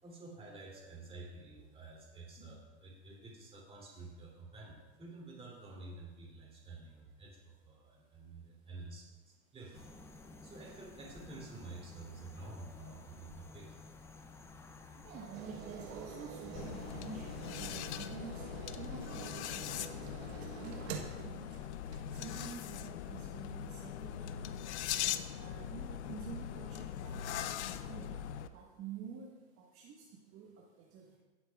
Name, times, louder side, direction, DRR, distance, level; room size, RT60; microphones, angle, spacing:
voice 1, 0.0-13.8, right 2 dB, 15° right, -3 dB, 2.7 m, -50 dB
sound 1, 9.7-18.1, left 3 dB, 10° left, 0.4 m, -53 dB
voice 2, 15.0-18.4 18.8-21.8 22.1-24.9 25.3-28.2 28.5-29.3 29.7-30.0 30.3-30.5 30.9-31.0, right 6 dB, 40° right, -2 dB, 1.4 m, -49 dB
sound 2, 15.3-22.3 22.9-23.0, right 7 dB, 65° right, 1.2 m, -48 dB
sound 3, 16.6-28.5, left 10 dB, 70° left, 0.6 m, -41 dB
16.0 x 7.8 x 2.3 m, 1.3 s
supercardioid pair, 130°, 35 cm